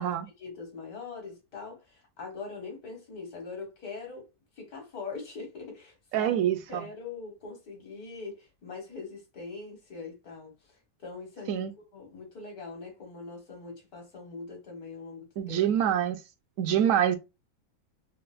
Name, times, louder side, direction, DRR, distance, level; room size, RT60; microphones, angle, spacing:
voice 1, 0.4-4.3 4.6-6.4 6.7-10.5 11.0-11.7 11.9-15.6, left 4 dB, 85° left, 1.9 m, -42 dB
voice 2, 6.1-6.9 11.5-11.7 15.4-16.2 16.6-17.2, right 10 dB, 70° right, 0.9 m, -25 dB
4.2 x 2.1 x 2.4 m
omnidirectional pair, 1.6 m